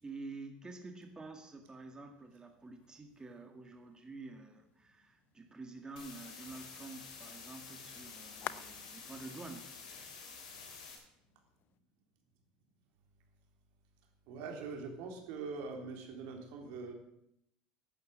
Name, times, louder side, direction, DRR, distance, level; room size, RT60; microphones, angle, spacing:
voice 1, 0.0-9.7, right 3 dB, 20° right, 5 dB, 1.9 m, -49 dB
sound 1, 1.8-11.8, left 12 dB, 55° left, 0.7 m, -54 dB
sound 2, 6.0-11.0, left 5 dB, 90° left, 3.6 m, -50 dB
voice 2, 14.3-16.9, right 4 dB, 70° right, 2 dB, 3.5 m, -43 dB
11.5 x 9.4 x 7.8 m, 0.78 s
supercardioid pair, 85°, 4 cm